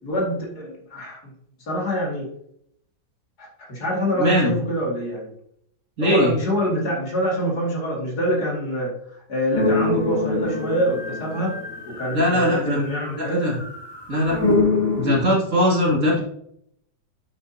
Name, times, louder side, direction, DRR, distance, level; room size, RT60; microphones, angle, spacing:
voice 1, 0.0-1.2 1.7-2.3 3.4-5.3 6.0-11.5 11.9-13.4, equal, 55° left, -2 dB, 2.8 m, -25 dB
voice 2, 4.2-4.5 6.0-6.3 12.1-12.8 13.2-13.6 14.1-14.4 15.0-16.2, left 1 dB, 40° right, -3 dB, 2.6 m, -20 dB
sound 1, 9.5-13.1 13.4-15.2, left 3 dB, 15° left, 1.5 m, -24 dB
8.8 x 8.7 x 2.8 m, 0.70 s
omnidirectional pair, 2.1 m